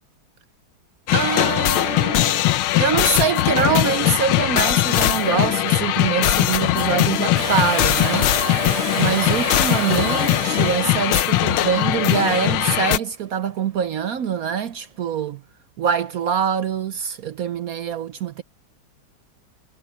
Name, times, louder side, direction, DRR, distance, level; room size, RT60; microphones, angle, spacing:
sound 1, 1.1-13.0, left 14 dB, 80° left, 1.6 m, -20 dB
voice 1, 1.1-2.4 2.8-8.3 9.0-15.4 15.8-18.4, right 7 dB, 65° right, 0.8 m, -24 dB
Domestic sounds home sounds, 7.3-13.1 15.1-15.2, right 5 dB, 40° right, 0.5 m, -31 dB
omnidirectional pair, 2.3 m